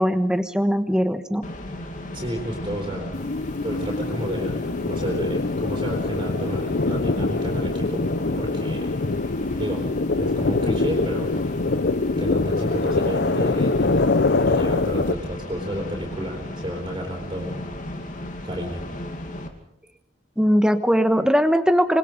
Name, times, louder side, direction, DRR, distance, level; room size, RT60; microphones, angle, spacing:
voice 1, 0.0-1.4 20.4-22.0, equal, 5° right, 9 dB, 1.2 m, -20 dB
sound 1, 1.4-19.5, left 1 dB, 45° left, 2.6 m, -34 dB
voice 2, 2.1-3.1 3.6-8.0 8.4-8.9 9.5-9.8 10.2-11.3 12.2-14.1 14.5-17.7 18.4-18.8, equal, 25° right, -1 dB, 4.2 m, -31 dB
sound 2, 3.1-15.1, left 3 dB, 60° left, 0.7 m, -24 dB
27.0 x 21.0 x 5.3 m, 0.79 s
head